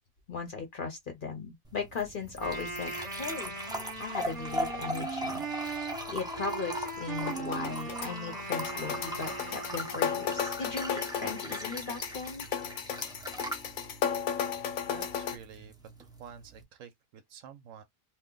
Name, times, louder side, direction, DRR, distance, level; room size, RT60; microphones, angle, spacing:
voice 1, 0.3-3.5 4.0-12.5, left 4 dB, 45° left, 0.8 m, -38 dB
sound 1, 1.6-16.6, equal, 5° right, 0.3 m, -40 dB
Wind instrument woodwind instrument, 2.3-10.3, right 4 dB, 35° right, 1.0 m, -39 dB
sound 2, 7.2-15.4, left 8 dB, 75° left, 1.0 m, -34 dB
voice 2, 14.9-15.7 16.0-17.8, right 8 dB, 70° right, 0.9 m, -49 dB
2.8 x 2.1 x 3.7 m
omnidirectional pair, 1.5 m